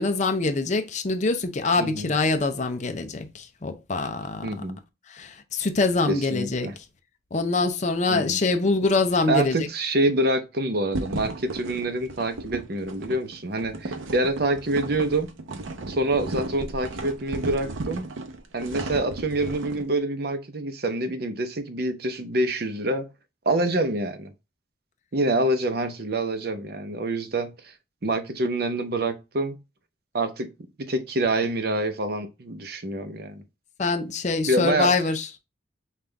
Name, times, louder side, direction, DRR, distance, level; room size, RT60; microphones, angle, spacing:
voice 1, 0.0-4.5 5.1-6.7 7.3-9.6 33.8-35.3, left 3 dB, 35° left, 0.5 m, -24 dB
voice 2, 1.8-2.1 4.4-4.8 6.1-6.7 8.1-8.4 9.3-15.3 15.9-18.1 18.5-23.1 23.5-24.3 25.1-27.7 28.0-29.6 30.1-30.5 30.9-33.4 34.5-34.9, right 1 dB, 55° right, 0.7 m, -26 dB
sound 1, 10.9-19.9, right 2 dB, 85° right, 0.7 m, -34 dB
5.4 x 2.4 x 3.3 m
head